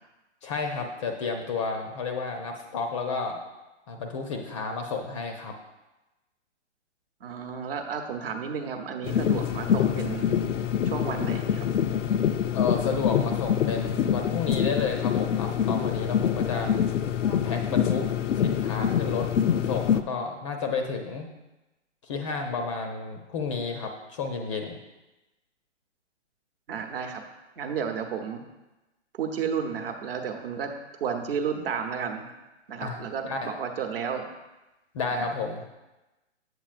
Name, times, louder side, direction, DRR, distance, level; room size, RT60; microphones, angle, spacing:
voice 1, 0.4-3.4 3.9-5.5 12.5-16.7 17.2-18.1 18.4-21.3 22.0-24.8 32.8-33.5 34.9-35.6, left 4 dB, 25° left, 4 dB, 0.5 m, -31 dB
voice 2, 7.2-10.5 10.9-11.7 26.7-27.2 27.6-28.4 29.1-30.7 31.0-32.2 32.7-34.2 35.1-35.3, right 7 dB, 50° right, 5 dB, 1.0 m, -32 dB
sound 1, 9.0-20.0, left 9 dB, 90° left, 0.5 m, -25 dB
8.1 x 7.5 x 2.5 m, 1.0 s
hypercardioid pair, 135°, 36 cm